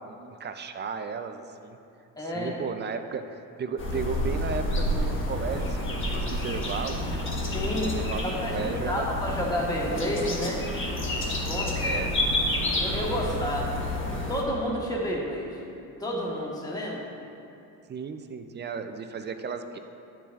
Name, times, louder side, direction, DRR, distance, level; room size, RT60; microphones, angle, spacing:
voice 1, 0.0-1.8 2.2-7.1 7.9-9.1 11.8-12.2 13.2-13.6 17.9-19.8, right 5 dB, 30° right, 8 dB, 0.4 m, -35 dB
voice 2, 2.2-2.5 7.5-7.9 8.4-10.6 11.3-12.0 12.7-13.7 14.3-15.5 16.0-17.0, equal, 10° left, -4 dB, 1.4 m, -30 dB
sound 1, 3.8-14.4, left 1 dB, 35° left, 1.3 m, -29 dB
10.0 x 6.9 x 2.4 m, 2.7 s
cardioid pair, 105°, 37 cm